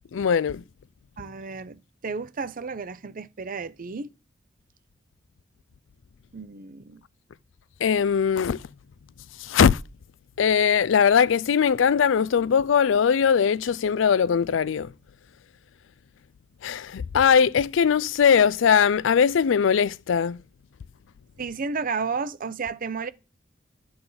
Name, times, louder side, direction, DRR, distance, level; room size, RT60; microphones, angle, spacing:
voice 1, 0.1-0.6 7.8-8.6 9.4-9.8 10.4-14.9 16.6-20.4, left 7 dB, 85° left, 0.4 m, -20 dB
voice 2, 1.2-4.1 6.3-7.0 21.4-23.1, right 4 dB, 45° right, 0.6 m, -32 dB
12.0 x 7.8 x 3.9 m
head